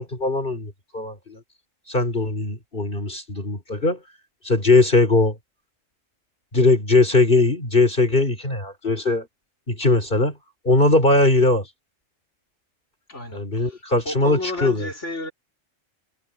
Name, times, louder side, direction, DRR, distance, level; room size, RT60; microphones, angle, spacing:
voice 1, 0.0-1.4 1.9-4.0 4.4-5.4 6.5-9.3 9.7-10.3 10.6-11.7 13.3-14.9, left 2 dB, 40° left, 3.8 m, -20 dB
voice 2, 13.1-15.3, left 2 dB, 65° left, 5.4 m, -32 dB
omnidirectional pair, 1.3 m